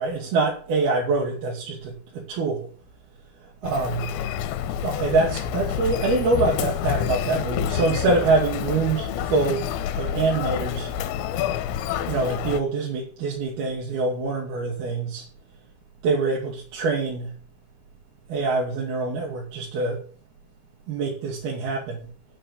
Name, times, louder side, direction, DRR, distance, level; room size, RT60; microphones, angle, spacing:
voice 1, 0.0-2.7 3.6-4.1 4.8-9.7 10.0-10.9 12.1-15.2 16.0-17.3 18.3-20.0 20.9-22.1, right 3 dB, 60° right, -3 dB, 4.2 m, -25 dB
Human voice, 3.6-12.6, left 9 dB, 85° left, 3.1 m, -28 dB
9.6 x 8.9 x 6.9 m, 0.43 s
omnidirectional pair, 5.1 m